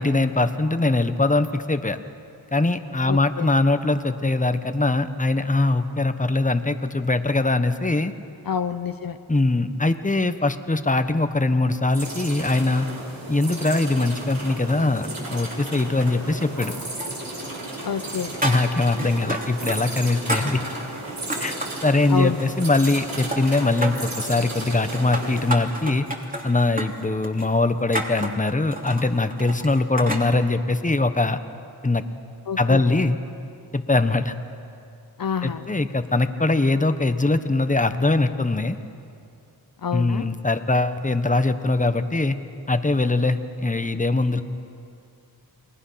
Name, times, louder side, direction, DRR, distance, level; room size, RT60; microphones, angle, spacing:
voice 1, 0.0-2.0 2.5-8.1 9.3-12.9 13.3-16.7 18.4-20.6 21.4-21.6 21.8-26.1 26.4-31.4 31.8-32.0 32.6-33.2 33.7-34.3 35.4-38.8 39.9-42.4 42.7-44.4, left 2 dB, 20° left, 10 dB, 1.2 m, -22 dB
voice 2, 3.1-3.5 8.4-9.2 17.8-18.4 22.1-22.4 32.5-32.8 35.2-35.7 39.8-40.3, left 7 dB, 65° left, 10 dB, 0.8 m, -27 dB
sound 1, 11.9-25.5, right 2 dB, 65° right, 4.7 m, -34 dB
sound 2, 17.0-17.6 17.8-19.8 20.0-21.8 22.3-23.0 23.3-24.2 24.7-30.3, right 1 dB, 20° right, 3.2 m, -31 dB
29.0 x 20.0 x 5.9 m, 2.5 s
cardioid pair, 45°, 37 cm